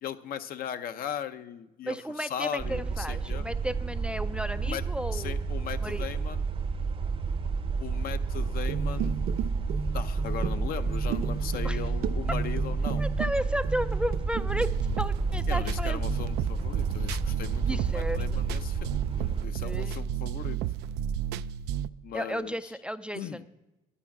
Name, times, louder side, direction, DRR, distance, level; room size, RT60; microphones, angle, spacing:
voice 1, 0.0-3.5 4.6-4.8 5.1-6.4 7.8-9.1 9.9-13.1 15.5-20.6 22.0-22.6 23.1-23.4, left 9 dB, 60° left, 11 dB, 0.7 m, -38 dB
voice 2, 1.8-5.3 5.8-6.1 11.6-11.8 13.0-14.7 15.0-16.0 17.7-18.2 19.6-20.0 22.1-23.4, equal, 5° right, 12 dB, 0.4 m, -33 dB
sound 1, 2.6-19.4, right 4 dB, 35° right, 0.7 m, -30 dB
sound 2, 8.7-13.3 13.6-14.4, right 7 dB, 65° right, 0.8 m, -34 dB
sound 3, 14.5-21.9, right 10 dB, 80° right, 0.4 m, -32 dB
11.5 x 9.7 x 5.9 m, 1.0 s
cardioid pair, 110°, 17 cm